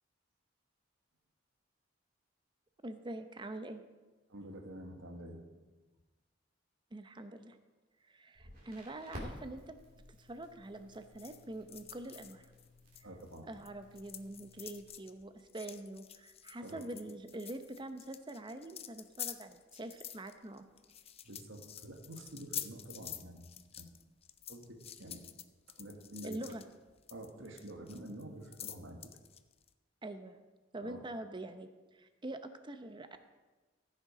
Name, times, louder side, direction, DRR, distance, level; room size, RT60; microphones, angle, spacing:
voice 1, 2.8-3.8 6.9-7.6 8.0-9.8 10.2-12.5 13.4-20.6 26.2-26.6 30.0-30.4 30.7-33.1, right 1 dB, 25° right, 9 dB, 0.7 m, -45 dB
voice 2, 4.3-5.6 13.0-13.5 16.6-16.9 21.2-23.5 23.8-23.9 24.5-25.2 25.8-26.5 27.1-29.0 30.8-31.0, right 1 dB, 85° right, 3 dB, 1.6 m, -48 dB
Crackle, 8.3-14.9, equal, 50° right, 2.8 m, -53 dB
sound 1, 10.9-13.7 13.9-29.7, left 10 dB, 30° left, 0.5 m, -48 dB
14.5 x 6.5 x 5.0 m, 1.2 s
head